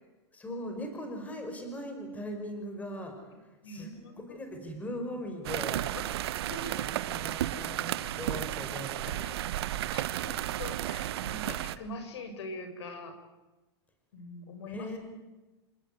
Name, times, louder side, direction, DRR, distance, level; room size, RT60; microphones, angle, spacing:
voice 1, 0.3-3.2 3.4-3.9 4.2-5.9 6.7-9.4 14.7-15.0, equal, 10° left, 5 dB, 5.4 m, -40 dB
voice 2, 3.6-4.4 6.3-6.8 9.0-9.3 9.9-13.2 14.1-15.0, left 2 dB, 75° left, 8 dB, 6.4 m, -43 dB
sound 1, 5.4-11.8, right 13 dB, 65° right, 1.4 m, -33 dB
27.5 x 19.5 x 9.5 m, 1.1 s
supercardioid pair, 150°, 14 cm